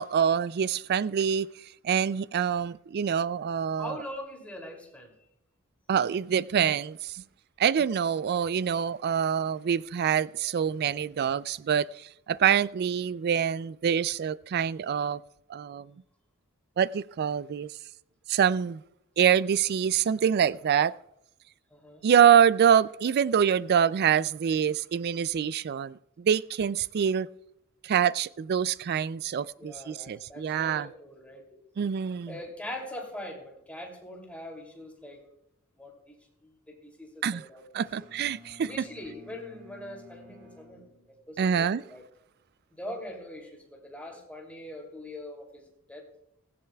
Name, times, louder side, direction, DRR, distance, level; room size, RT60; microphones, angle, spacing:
voice 1, 0.0-1.5 1.8-4.0 5.9-7.2 7.6-11.9 12.3-15.2 15.5-15.9 16.8-17.7 18.3-18.8 19.2-20.9 22.0-27.3 27.8-30.9 31.8-32.3 37.2-37.4 37.7-38.7 41.4-41.8, right 8 dB, 50° right, 0.3 m, -25 dB
voice 2, 3.8-5.1 21.7-22.1 29.5-31.5 32.3-35.2 35.8-36.2 36.4-37.8 38.6-42.0 42.7-46.0, left 1 dB, 5° left, 2.7 m, -42 dB
Bowed string instrument, 37.8-41.6, left 2 dB, 70° right, 2.2 m, -53 dB
17.0 x 15.5 x 2.3 m
head